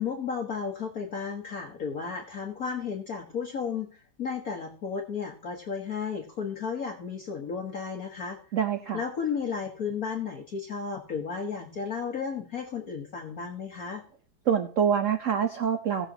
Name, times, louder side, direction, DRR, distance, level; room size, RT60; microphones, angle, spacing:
voice 1, 0.0-8.4 8.9-14.0, left 6 dB, 45° left, 1 dB, 1.6 m, -33 dB
voice 2, 8.5-9.0 14.5-16.1, right 7 dB, 65° right, 7 dB, 0.7 m, -25 dB
18.0 x 7.1 x 2.9 m, 0.43 s
omnidirectional pair, 2.4 m